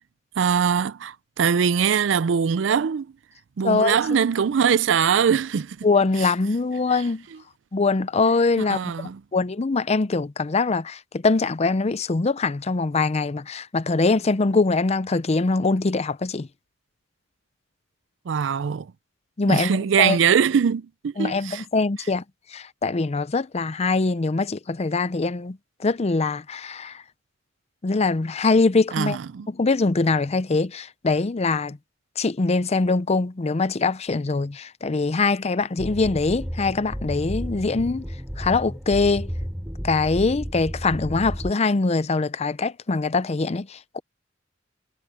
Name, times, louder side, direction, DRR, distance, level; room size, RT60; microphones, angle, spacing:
voice 1, 0.4-3.1 3.6-5.9 6.2-6.3 6.9-7.0 8.7-9.2 18.3-18.9 19.5-21.6 28.9-29.5, right 7 dB, 70° right, 0.4 m, -22 dB
voice 2, 3.6-3.9 5.8-7.2 7.7-8.8 9.3-16.5 19.4-19.7 20.0-20.2 21.2-22.2 22.5-25.6 25.8-27.0 27.8-29.2 29.5-31.8 32.2-38.0 38.4-39.3 39.8-44.0, left 3 dB, 35° left, 0.5 m, -23 dB
sound 1, 35.8-41.5, equal, 10° right, 3.0 m, -32 dB
head